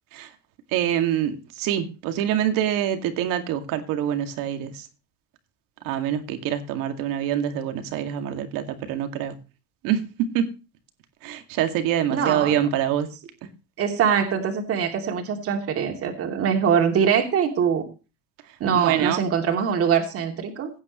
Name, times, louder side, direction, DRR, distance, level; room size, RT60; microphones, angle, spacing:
voice 1, 0.7-4.9 5.8-9.4 9.8-10.5 11.2-13.1 18.7-19.3, right 10 dB, 80° right, 2.3 m, -25 dB
voice 2, 12.1-12.6 13.8-17.9 18.6-20.7, right 7 dB, 45° right, 2.9 m, -23 dB
17.0 x 9.6 x 3.1 m
cardioid pair, 155°, 33 cm